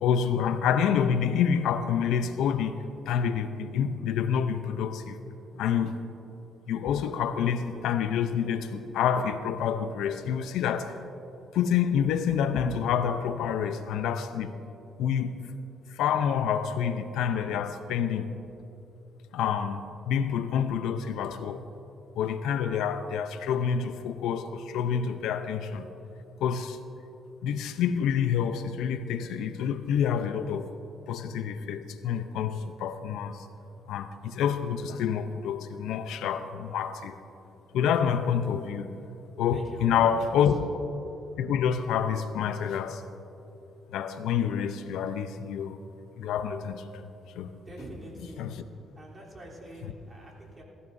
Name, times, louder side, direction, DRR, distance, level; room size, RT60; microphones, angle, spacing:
voice 1, 0.0-2.8 3.1-5.2 5.6-5.9 6.7-11.0 11.5-14.5 15.0-15.4 15.9-18.3 19.3-21.6 22.2-25.9 26.4-26.8 27.4-30.6 31.1-33.5 33.9-37.2 37.7-39.0 39.4-40.5 41.4-43.0 43.9-45.8 46.2-47.1 47.3-47.5 48.4-48.5, left 8 dB, 90° left, 10 dB, 0.6 m, -28 dB
voice 2, 39.5-40.6 47.6-48.5 48.9-50.6, right 1 dB, 30° right, -4 dB, 3.3 m, -44 dB
19.0 x 15.5 x 2.7 m, 2.9 s
cardioid pair, 90°, 0 cm